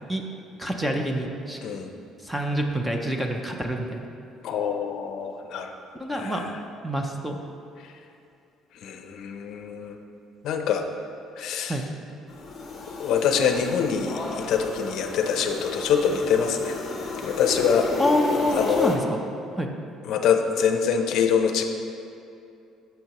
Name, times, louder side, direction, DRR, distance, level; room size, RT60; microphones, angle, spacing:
voice 1, 0.6-1.6 2.2-4.1 5.9-6.4 6.8-7.4 11.7-11.8 18.0-19.2 19.5-19.7, equal, 5° right, 3 dB, 0.5 m, -27 dB
voice 2, 4.4-5.7 6.1-6.4 8.8-9.9 10.4-10.8 11.4-11.7 13.0-16.7 17.2-17.9 18.6-18.9 20.0-21.6, left 7 dB, 55° left, 5 dB, 0.6 m, -24 dB
sound 1, 12.3-19.0, left 3 dB, 30° left, 0.9 m, -33 dB
12.0 x 6.7 x 3.0 m, 2.6 s
cardioid pair, 175°, 0 cm